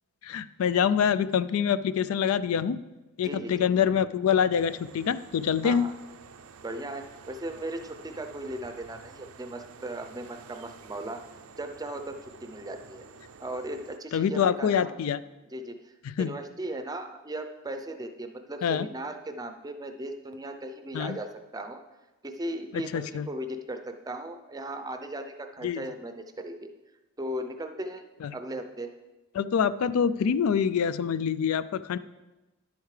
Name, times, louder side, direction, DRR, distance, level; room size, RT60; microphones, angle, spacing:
voice 1, 0.2-2.8 3.2-5.9 14.1-15.2 16.1-16.3 18.6-18.9 20.9-21.2 22.7-23.3 25.6-25.8 28.2-28.3 29.3-32.0, left 7 dB, 80° left, 15 dB, 0.3 m, -25 dB
voice 2, 3.2-3.7 5.6-5.9 6.6-11.2 11.6-13.1 13.4-14.9 15.5-21.8 22.2-26.7 27.2-28.0 28.3-28.9, right 1 dB, 15° right, 6 dB, 0.5 m, -37 dB
sound 1, 4.5-14.0, right 5 dB, 85° right, 0.5 m, -50 dB
11.0 x 8.1 x 3.2 m, 1.1 s
head